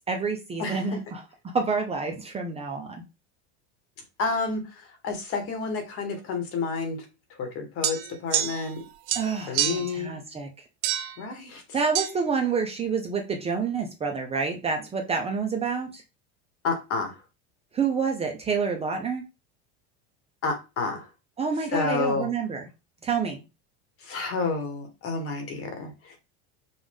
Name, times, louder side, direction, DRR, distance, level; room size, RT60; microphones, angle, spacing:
voice 1, 0.1-1.2 1.5-3.0 9.1-10.5 11.7-16.0 17.7-19.2 21.4-22.7 23.0-23.4, right 5 dB, 20° right, 3 dB, 0.7 m, -28 dB
voice 2, 4.2-7.0 7.4-8.8 9.5-10.1 11.2-11.6 16.6-17.2 20.4-21.1 21.7-22.3 24.0-26.2, left 4 dB, 40° left, 5 dB, 1.4 m, -30 dB
sound 1, 7.8-8.8 9.1-10.0 10.8-11.2 11.9-12.1, right 12 dB, 60° right, 0.8 m, -28 dB
5.4 x 2.5 x 3.5 m, 0.28 s
supercardioid pair, 135°, 33 cm